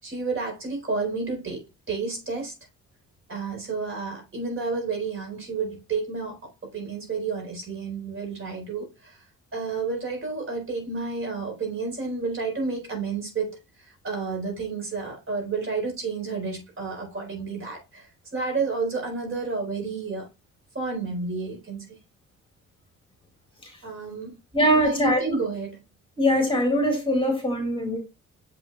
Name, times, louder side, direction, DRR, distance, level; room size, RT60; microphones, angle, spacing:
voice 1, 0.0-2.5 3.3-9.2 9.5-20.3 20.7-21.9 23.8-24.3 24.8-25.8, right 4 dB, 45° right, 4.3 m, -31 dB
voice 2, 24.5-25.4 26.2-28.0, equal, 15° left, 2.6 m, -22 dB
7.1 x 6.4 x 2.3 m
cardioid pair, 90°, 30 cm